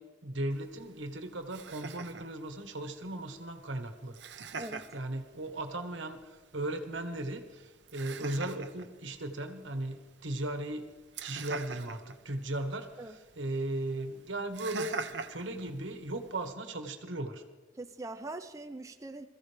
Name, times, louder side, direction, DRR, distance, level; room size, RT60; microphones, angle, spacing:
voice 1, 0.0-4.2 4.9-10.9 11.2-15.0 15.3-17.4, right 1 dB, 85° right, 7 dB, 1.4 m, -37 dB
Laughter, 0.5-16.5, right 4 dB, 70° right, 0.8 m, -46 dB
voice 2, 17.8-19.3, right 2 dB, 15° right, 7 dB, 0.5 m, -42 dB
21.5 x 14.5 x 3.4 m, 1.2 s
head